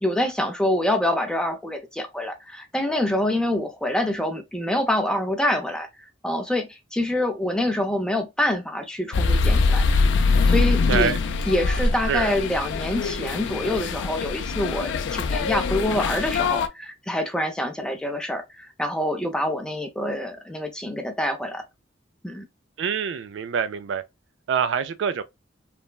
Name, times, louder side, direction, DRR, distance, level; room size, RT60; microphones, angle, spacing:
voice 1, 0.0-9.8 10.2-11.1 11.5-21.6 22.2-22.5, left 1 dB, 5° left, 0.5 m, -26 dB
sound 1, 9.1-16.7, left 4 dB, 80° left, 0.4 m, -23 dB
voice 2, 10.9-11.2 12.1-12.3 22.8-24.0 24.5-25.2, right 6 dB, 80° right, 0.3 m, -25 dB
3.2 x 2.1 x 2.3 m
head